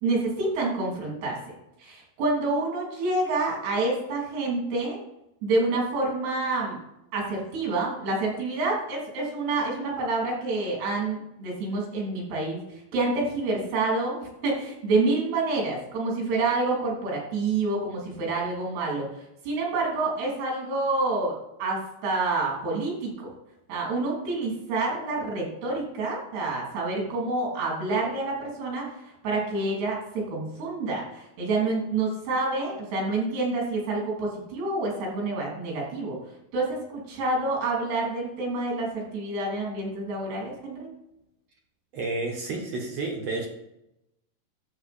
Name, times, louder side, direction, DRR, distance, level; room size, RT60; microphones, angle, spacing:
voice 1, 0.0-5.0 5.4-6.8 7.1-19.1 19.5-23.3 23.7-36.2 36.5-40.9, right 3 dB, 80° right, -2 dB, 5.3 m, -28 dB
voice 2, 41.9-43.5, right 3 dB, 55° right, 1 dB, 2.0 m, -30 dB
11.0 x 7.8 x 4.3 m, 0.87 s
omnidirectional pair, 4.7 m